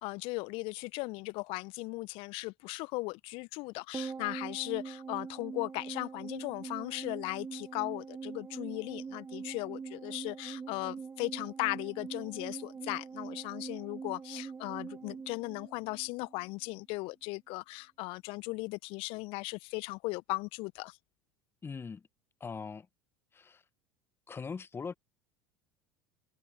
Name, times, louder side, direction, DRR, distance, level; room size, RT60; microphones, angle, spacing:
voice 1, 0.0-21.0, left 25 dB, 50° left, 1.2 m, -37 dB
sound 1, 3.9-16.5 16.7-16.8, right 5 dB, 20° right, 1.2 m, -43 dB
voice 2, 21.6-22.1 22.4-22.9 23.3-23.6 24.3-25.0, left 5 dB, 20° left, 1.3 m, -41 dB
figure-of-eight pair, 70°, 11 cm